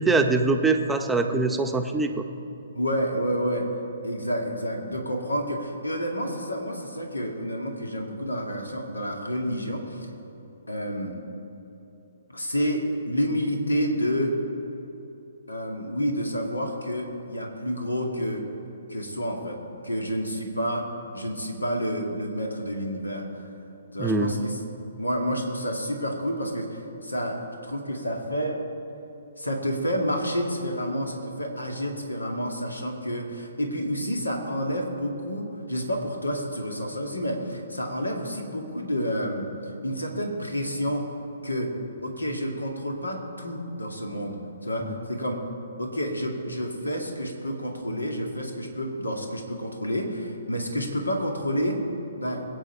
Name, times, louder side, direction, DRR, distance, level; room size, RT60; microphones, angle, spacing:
voice 1, 0.0-2.1 24.0-24.3, right 3 dB, 5° right, 4 dB, 0.8 m, -23 dB
voice 2, 2.7-3.7 4.0-10.1 10.7-11.1 12.3-14.4 15.5-18.4 18.9-19.6 19.8-20.9 21.1-23.2 23.9-24.6 25.0-28.6 29.4-39.5 39.8-41.1 41.4-41.7 42.0-45.4 45.8-51.8 52.2-52.4, equal, 85° left, 2 dB, 2.1 m, -29 dB
21.5 x 9.0 x 4.4 m, 2.9 s
figure-of-eight pair, 130°, 0 cm